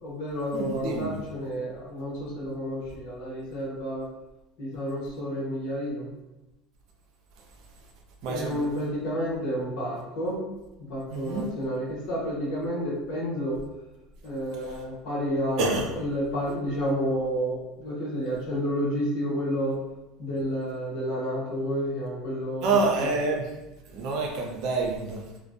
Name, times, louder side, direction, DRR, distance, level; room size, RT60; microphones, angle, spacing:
voice 1, 0.0-4.1 4.6-6.1 8.3-10.4 10.9-13.6 14.2-19.8 20.2-22.7 22.9-23.1, equal, 65° left, -5 dB, 1.1 m, -30 dB
voice 2, 0.5-1.2 8.2-8.6 11.1-11.5 14.6-14.8 15.6-15.9 22.6-23.5 23.9-25.2, right 3 dB, 60° right, 1 dB, 0.5 m, -27 dB
2.3 x 2.2 x 2.6 m, 1.0 s
hypercardioid pair, 85°, 0 cm